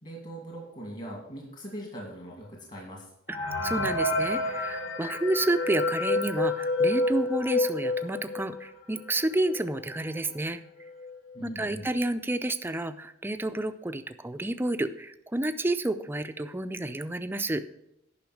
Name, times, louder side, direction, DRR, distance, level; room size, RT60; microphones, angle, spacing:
voice 1, 0.0-3.1 11.3-11.9, right 1 dB, 40° left, -2 dB, 2.2 m, -41 dB
sound 1, 3.3-8.7 9.2-9.3 9.5-9.6 10.4-10.5 10.8-11.2, left 2 dB, 80° left, 1.9 m, -28 dB
voice 2, 3.3-10.6 11.4-17.6, right 1 dB, 10° right, 10 dB, 0.4 m, -30 dB
10.5 x 5.7 x 6.3 m, 0.81 s
head